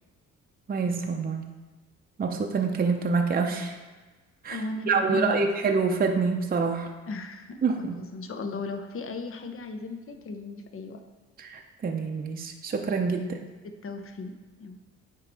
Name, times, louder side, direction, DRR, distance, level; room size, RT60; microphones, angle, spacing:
voice 1, 0.7-1.5 2.2-3.8 4.4-4.6 4.9-6.9 7.6-8.0 11.4-13.2, right 4 dB, 30° right, 3 dB, 0.7 m, -26 dB
voice 2, 4.5-5.5 7.1-11.0 13.1-13.4 13.6-14.8, left 3 dB, 45° left, 7 dB, 0.9 m, -36 dB
9.3 x 3.1 x 4.7 m, 1.3 s
cardioid pair, 90°, 30 cm